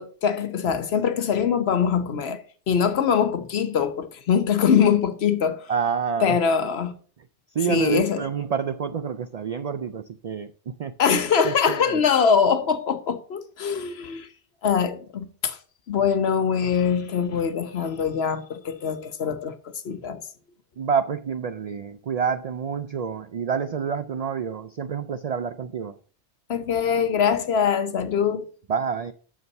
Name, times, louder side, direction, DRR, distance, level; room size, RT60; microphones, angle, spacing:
voice 1, 0.0-2.4 2.7-5.7 6.2-6.9 7.7-8.2 11.0-14.3 14.6-15.6 15.9-19.5 19.8-20.2 26.5-28.5, left 7 dB, 65° left, 1.1 m, -23 dB
voice 2, 5.7-6.4 7.5-11.2 11.4-11.9 20.8-26.0 28.7-29.1, right 6 dB, 75° right, 0.3 m, -28 dB
6.9 x 6.2 x 5.4 m
omnidirectional pair, 1.2 m